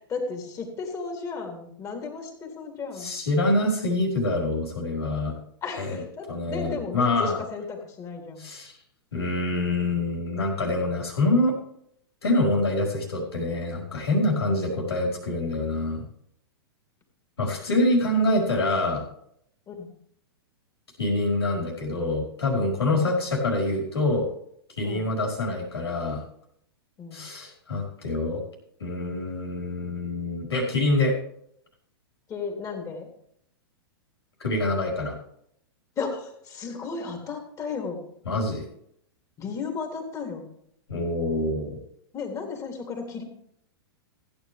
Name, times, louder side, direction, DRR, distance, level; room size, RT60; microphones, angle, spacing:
voice 1, 0.1-3.1 5.6-8.5 19.7-19.9 22.9-23.2 24.8-25.1 27.0-27.3 32.3-33.1 35.9-38.0 39.4-40.4 42.1-43.2, left 5 dB, 25° left, 2 dB, 3.5 m, -34 dB
voice 2, 3.0-5.3 5.8-6.0 6.3-7.4 8.4-8.8 9.1-11.6 12.2-16.0 17.4-19.0 21.0-24.3 24.8-26.2 27.1-28.4 28.8-31.2 34.4-35.2 38.2-38.7 40.9-41.8, left 2 dB, 85° left, 0 dB, 4.8 m, -25 dB
15.5 x 9.6 x 3.5 m, 0.70 s
hypercardioid pair, 110°, 13 cm